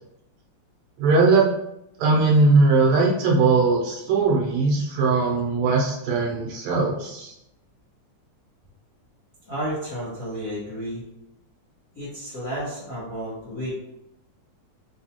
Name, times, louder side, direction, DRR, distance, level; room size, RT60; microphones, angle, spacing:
voice 1, 1.0-1.4 2.0-7.3, right 3 dB, 75° right, -3 dB, 1.8 m, -19 dB
voice 2, 9.4-11.0 11.9-13.7, equal, 55° left, -10 dB, 0.9 m, -32 dB
4.9 x 2.3 x 2.8 m, 0.82 s
omnidirectional pair, 3.5 m